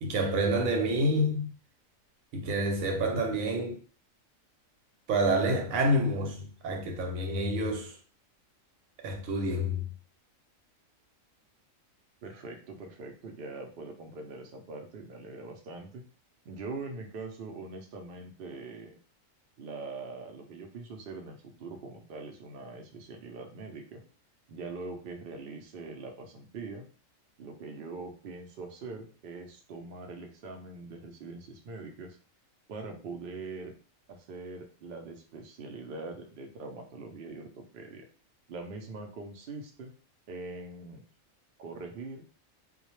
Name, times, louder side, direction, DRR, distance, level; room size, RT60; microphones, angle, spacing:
voice 1, 0.0-1.5 2.3-3.8 5.1-7.9 9.0-9.8, right 1 dB, 85° right, 1.1 m, -28 dB
voice 2, 12.2-16.0 16.5-19.0 19.6-24.0 24.5-26.8 27.4-32.2 32.7-33.7 34.1-38.1 38.5-39.9 40.3-41.0 41.6-42.3, right 3 dB, 60° right, 0.6 m, -42 dB
2.3 x 2.1 x 2.9 m
omnidirectional pair, 1.4 m